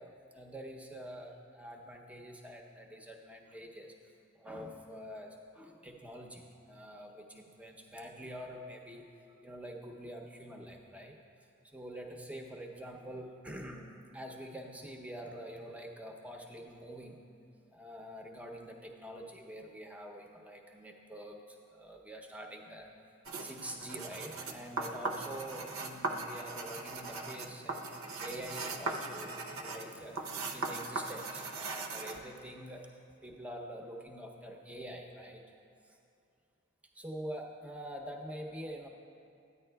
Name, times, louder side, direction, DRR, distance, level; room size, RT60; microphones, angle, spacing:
voice 1, 0.0-3.9 4.4-9.1 9.4-11.1 11.7-13.9 14.1-17.2 17.7-21.4 21.7-22.9 23.4-27.8 28.2-30.2 30.5-32.9 33.2-35.4 37.0-38.9, equal, 5° right, 1 dB, 0.6 m, -46 dB
sound 1, 23.3-32.2, right 3 dB, 70° right, 0.7 m, -39 dB
14.0 x 9.6 x 2.2 m, 2.5 s
head